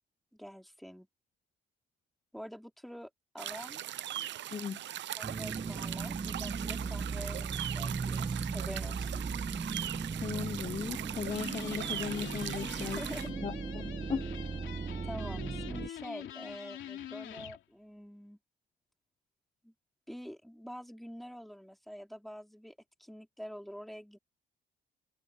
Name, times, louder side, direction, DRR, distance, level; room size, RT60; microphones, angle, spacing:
voice 1, 0.3-1.1 2.3-3.8 5.2-9.3 12.6-13.4 15.0-18.4 19.6-19.7 20.1-24.2, equal, ahead, 4.3 m, -46 dB
sound 1, 3.4-13.3, right 12 dB, 65° right, 0.8 m, -40 dB
voice 2, 4.5-4.8 10.2-13.0 13.4-14.3, left 6 dB, 30° left, 0.6 m, -37 dB
sound 2, 5.2-15.9, right 4 dB, 30° right, 1.5 m, -37 dB
sound 3, 11.2-17.6, left 11 dB, 75° left, 3.0 m, -46 dB
cardioid pair, 90°, 20 cm